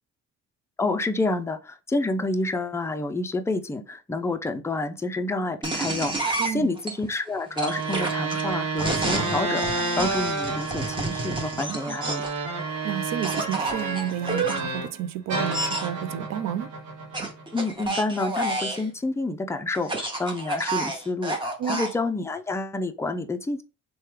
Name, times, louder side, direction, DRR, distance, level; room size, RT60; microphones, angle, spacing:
voice 1, 0.8-12.2 17.5-23.6, left 2 dB, 10° left, 0.4 m, -29 dB
sound 1, 5.6-6.9 7.6-12.4 13.2-14.6 15.5-15.9 17.1-18.9 19.8-21.9, right 2 dB, 15° right, 0.9 m, -29 dB
voice 2, 6.4-6.7 11.7-12.0 12.8-16.7 21.6-21.8, right 10 dB, 65° right, 0.4 m, -31 dB
sound 2, 7.6-15.0 15.3-17.7, right 3 dB, 85° right, 0.8 m, -30 dB
3.2 x 2.2 x 3.1 m
cardioid pair, 90°, 30 cm